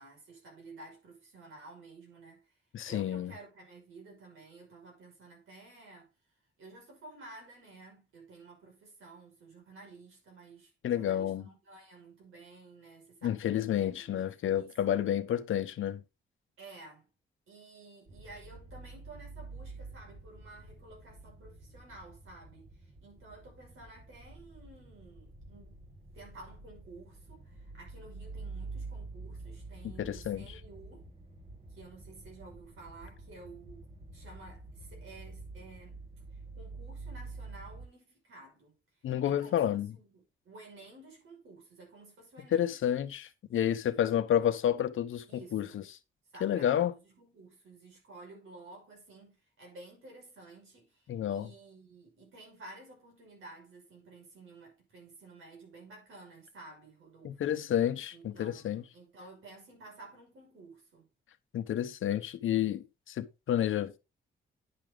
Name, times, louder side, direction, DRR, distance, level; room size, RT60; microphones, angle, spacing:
voice 1, 0.0-6.1 6.6-15.0 16.6-17.1 17.5-25.8 26.1-31.1 31.7-36.0 36.3-38.8 39.2-42.9 43.4-43.6 45.3-45.8 46.3-57.6 58.1-61.1, right 2 dB, 85° right, 5.8 m, -53 dB
voice 2, 2.7-3.3 10.8-11.4 13.2-16.0 30.0-30.4 39.0-39.9 42.5-45.3 45.5-45.8 46.4-46.9 51.1-51.5 57.2-58.8 61.5-64.0, left 10 dB, 80° left, 0.8 m, -30 dB
sound 1, 18.1-37.9, right 3 dB, 30° right, 1.8 m, -48 dB
9.8 x 6.1 x 3.8 m
cardioid pair, 90°, 20 cm